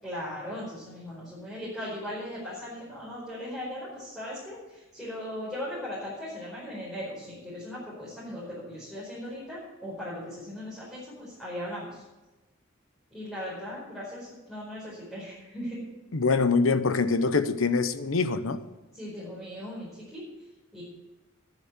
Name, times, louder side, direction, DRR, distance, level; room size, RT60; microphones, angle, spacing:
voice 1, 0.0-12.0 13.1-15.8 18.9-20.2 20.7-20.8, left 1 dB, ahead, 5.1 m, -38 dB
voice 2, 16.1-18.6, left 4 dB, 70° left, 0.8 m, -24 dB
10.0 x 10.0 x 8.2 m
head